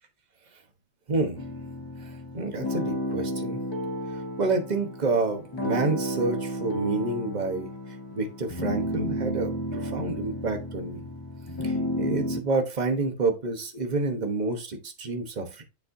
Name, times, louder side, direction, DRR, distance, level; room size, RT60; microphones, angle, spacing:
voice 1, 1.1-1.4 2.0-3.6 4.4-7.7 8.1-11.0 11.6-15.6, right 3 dB, 35° right, 5 dB, 1.2 m, -29 dB
sound 1, 1.3-12.4, equal, 20° left, 1.2 m, -32 dB
10.5 x 4.3 x 2.7 m, 0.30 s
omnidirectional pair, 1.3 m